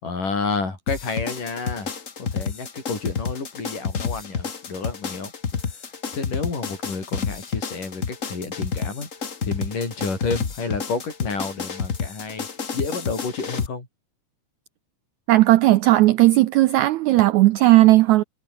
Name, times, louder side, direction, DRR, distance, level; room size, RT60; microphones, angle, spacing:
voice 1, 0.0-1.9 2.2-5.3 6.1-9.1 9.4-12.5 12.7-13.9, left 4 dB, 65° left, 8.0 m, -30 dB
sound 1, 0.9-13.7, left 5 dB, 45° left, 1.0 m, -29 dB
voice 2, 15.3-18.2, right 17 dB, 85° right, 1.6 m, -15 dB
omnidirectional pair, 4.0 m